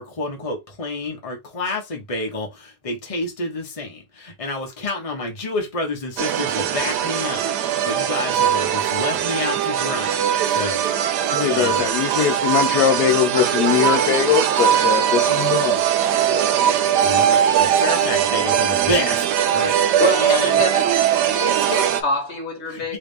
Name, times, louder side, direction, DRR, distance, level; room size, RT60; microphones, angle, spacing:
voice 1, 0.0-11.8 17.0-20.6 22.7-23.0, left 2 dB, 25° left, 1.2 m, -29 dB
sound 1, 6.2-22.0, right 9 dB, 80° right, 1.2 m, -20 dB
voice 2, 11.3-15.8, left 9 dB, 75° left, 1.1 m, -21 dB
voice 3, 20.0-20.9 21.3-23.0, equal, 45° left, 1.5 m, -25 dB
3.6 x 3.2 x 3.4 m
omnidirectional pair, 1.8 m